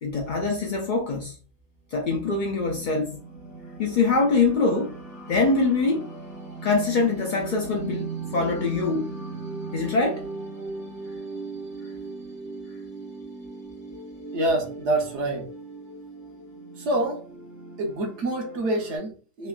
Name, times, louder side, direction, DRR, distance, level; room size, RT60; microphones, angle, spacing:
voice 1, 0.0-1.4 1.9-3.2 3.8-4.9 5.3-6.1 6.6-9.1 9.7-10.2, left 3 dB, 65° left, 0.4 m, -24 dB
sound 1, 2.0-19.0, right 3 dB, 20° left, 0.5 m, -38 dB
voice 2, 14.3-15.5 16.8-17.2 17.8-19.5, right 1 dB, 65° right, 1.0 m, -26 dB
3.2 x 2.1 x 2.2 m
omnidirectional pair, 1.3 m